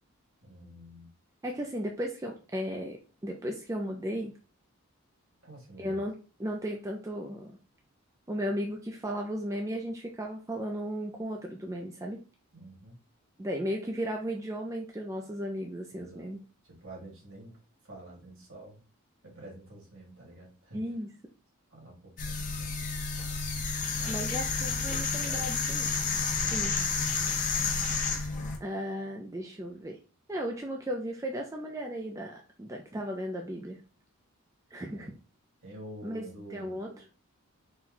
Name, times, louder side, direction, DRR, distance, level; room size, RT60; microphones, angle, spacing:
voice 1, 0.4-1.1 5.4-6.0 12.5-13.0 15.9-16.3 16.6-17.6 17.8-18.8 19.2-20.8 21.7-22.7 24.0-25.6 34.9-35.1 35.6-36.8, right 1 dB, 60° right, -2 dB, 2.0 m, -48 dB
voice 2, 1.4-4.3 5.8-6.1 6.4-7.5 8.3-12.2 13.4-16.4 20.7-21.1 24.1-25.9 26.4-26.8 28.6-30.0 30.3-33.8 34.7-35.1 36.0-36.9, equal, 15° right, 1 dB, 0.4 m, -35 dB
sound 1, 22.2-28.6, left 4 dB, 35° left, 0.7 m, -30 dB
4.3 x 2.2 x 3.8 m, 0.34 s
head